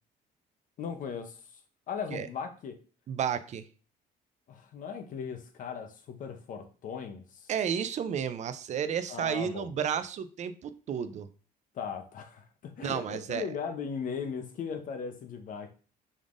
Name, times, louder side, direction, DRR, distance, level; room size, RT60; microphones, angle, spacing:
voice 1, 0.8-1.4 1.9-2.8 4.5-7.5 9.1-9.7 11.7-15.7, left 6 dB, 50° left, 8 dB, 0.7 m, -38 dB
voice 2, 3.1-3.6 7.5-11.3 12.8-13.5, right 8 dB, 45° right, 12 dB, 0.4 m, -32 dB
5.1 x 3.5 x 2.5 m, 0.39 s
cardioid pair, 110°, 17 cm